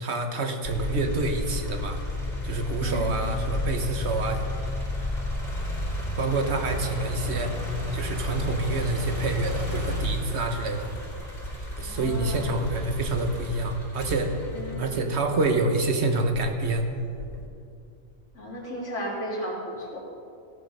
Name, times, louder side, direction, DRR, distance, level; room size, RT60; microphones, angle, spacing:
voice 1, 0.0-2.0 2.4-4.4 6.2-7.5 7.9-10.9 11.8-14.3 14.8-16.9, right 2 dB, 60° right, 5 dB, 1.4 m, -27 dB
sound 1, 0.6-15.7 16.3-17.5, left 2 dB, 45° left, 3.1 m, -32 dB
voice 2, 11.8-12.5 14.5-15.0 18.3-20.0, equal, 70° left, -2 dB, 2.7 m, -35 dB
16.0 x 7.6 x 5.4 m, 2.5 s
omnidirectional pair, 1.3 m